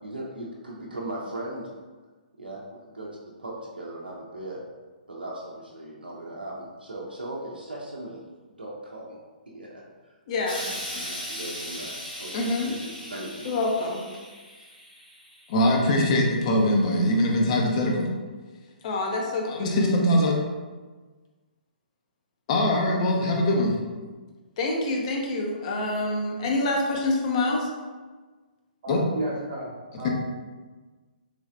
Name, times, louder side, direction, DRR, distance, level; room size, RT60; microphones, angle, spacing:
voice 1, 0.0-1.7 2.4-4.6 5.1-8.2 8.6-9.2 9.5-10.1 10.5-13.5, right 1 dB, 80° right, -4 dB, 0.6 m, -38 dB
voice 2, 10.3-10.6 10.9-11.0 12.3-12.7 13.4-14.0 15.5-18.1 18.8-20.4 22.5-23.8 24.6-27.7 28.9-29.0 30.0-30.1, left 1 dB, 40° left, 0 dB, 0.6 m, -24 dB
Explosion, 10.5-15.8 16.6-16.7, equal, 90° left, 1.3 m, -38 dB
voice 3, 28.8-29.7 30.0-30.1, right 1 dB, 55° right, -8 dB, 0.9 m, -32 dB
3.3 x 3.1 x 2.5 m, 1.3 s
figure-of-eight pair, 125°, 5 cm